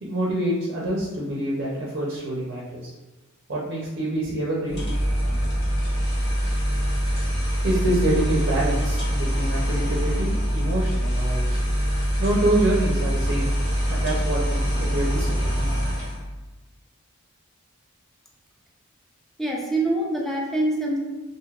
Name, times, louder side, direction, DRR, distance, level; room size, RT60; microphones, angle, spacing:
voice 1, 0.0-2.9 3.5-4.9 7.6-11.6 12.2-13.5 13.9-15.7, right 1 dB, 55° right, -5 dB, 0.5 m, -26 dB
sound 1, 4.7-16.2, equal, 55° left, 1.3 m, -24 dB
voice 2, 19.4-21.0, right 1 dB, ahead, -2 dB, 0.4 m, -24 dB
3.2 x 2.6 x 2.3 m, 1.2 s
head